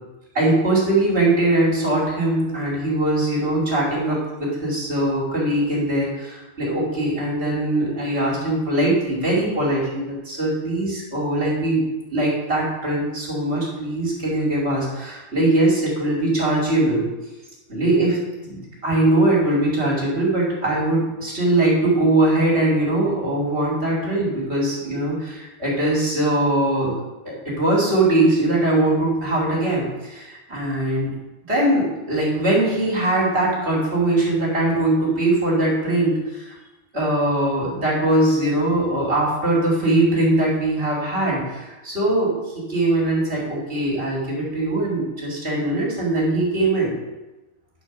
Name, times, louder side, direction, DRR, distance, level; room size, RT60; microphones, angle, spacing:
voice 1, 0.3-11.8 12.1-17.0 17.7-27.0 27.2-31.1 31.5-36.5 36.9-46.9, right 1 dB, 60° right, -5 dB, 2.9 m, -21 dB
10.0 x 4.4 x 6.0 m, 1.1 s
omnidirectional pair, 1.3 m